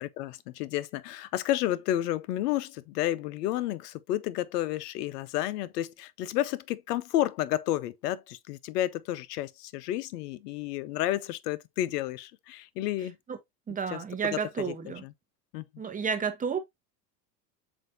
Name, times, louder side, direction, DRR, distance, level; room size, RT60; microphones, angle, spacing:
voice 1, 0.0-13.2 13.9-14.0 14.3-14.4 15.0-15.1 15.5-15.7, left 13 dB, 70° left, 0.6 m, -31 dB
voice 2, 13.7-15.0 15.8-16.6, right 6 dB, 15° right, 0.8 m, -31 dB
7.4 x 2.6 x 2.6 m
hypercardioid pair, 95°, 49 cm